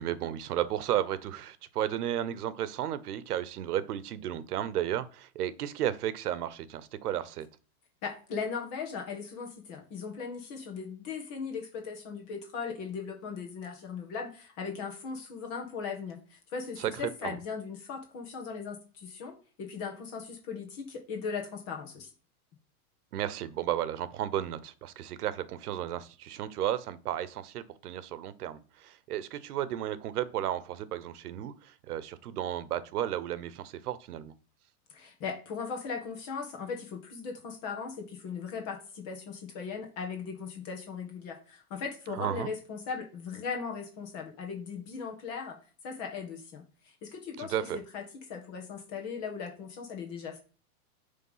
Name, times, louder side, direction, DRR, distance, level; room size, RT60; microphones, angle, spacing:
voice 1, 0.0-7.5 16.8-17.4 23.1-34.3 42.1-42.5 47.4-47.8, right 11 dB, 85° right, 1.0 m, -33 dB
voice 2, 8.0-22.1 34.9-45.6 45.8-50.4, left 5 dB, 35° left, 1.6 m, -38 dB
9.6 x 3.6 x 5.6 m
supercardioid pair, 165°, 44 cm